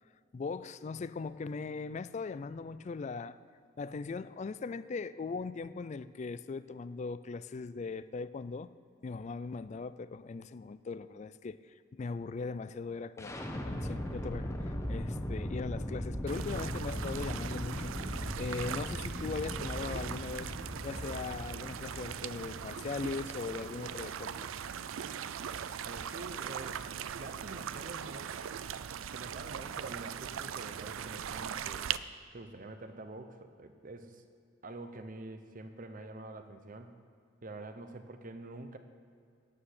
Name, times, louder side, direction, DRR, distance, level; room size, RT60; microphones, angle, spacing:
voice 1, 0.3-3.4 3.8-8.7 9.0-17.9 18.4-20.5 20.8-24.4, left 4 dB, 35° left, 15 dB, 0.3 m, -39 dB
sound 1, 13.2-25.0, equal, 15° left, 0.9 m, -39 dB
sound 2, 16.3-32.0, right 8 dB, 75° right, 0.4 m, -40 dB
voice 2, 25.8-28.4 29.1-31.9 32.3-34.2 34.6-37.0 37.4-38.8, right 2 dB, 40° right, 8 dB, 0.8 m, -46 dB
9.7 x 8.5 x 6.6 m, 2.4 s
head